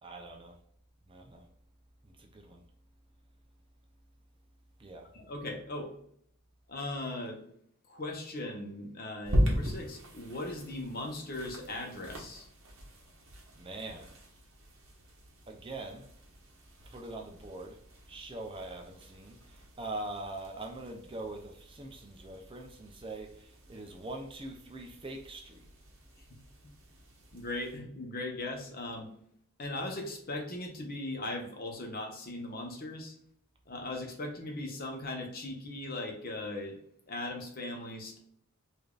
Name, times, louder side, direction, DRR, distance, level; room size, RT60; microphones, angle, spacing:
voice 1, 0.0-0.5 1.1-1.4 2.2-2.6 4.8-5.1 13.6-14.1 15.5-16.1 16.9-17.8 18.1-19.4 19.8-25.6, right 2 dB, 25° right, 0.5 m, -43 dB
voice 2, 5.1-5.9 6.7-7.4 7.9-12.5 26.3-26.4 27.3-29.1 29.6-33.1 33.7-36.8 37.1-38.2, left 2 dB, 40° left, 0.9 m, -38 dB
sound 1, 9.2-27.8, equal, 60° right, 1.1 m, -39 dB
4.9 x 2.6 x 2.4 m
head